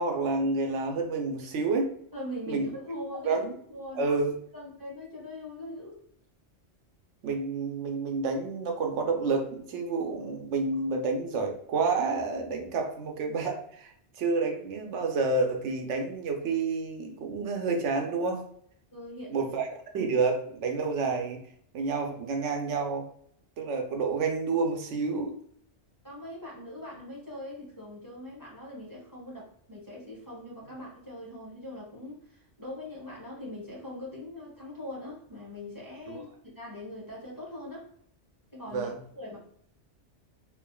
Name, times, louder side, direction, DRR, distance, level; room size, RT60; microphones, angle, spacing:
voice 1, 0.0-1.9 2.5-2.7 3.2-3.5 3.9-4.3 7.2-18.4 19.3-19.7 19.9-21.4 21.7-23.0 23.6-25.3 36.1-36.2 38.7-39.0, right 4 dB, 80° right, 3 dB, 0.9 m, -29 dB
voice 2, 2.1-4.2 4.5-6.0 18.9-19.5 26.0-37.9 38.5-39.4, left 1 dB, 15° left, -6 dB, 1.4 m, -41 dB
3.6 x 3.4 x 2.2 m, 0.65 s
omnidirectional pair, 1.2 m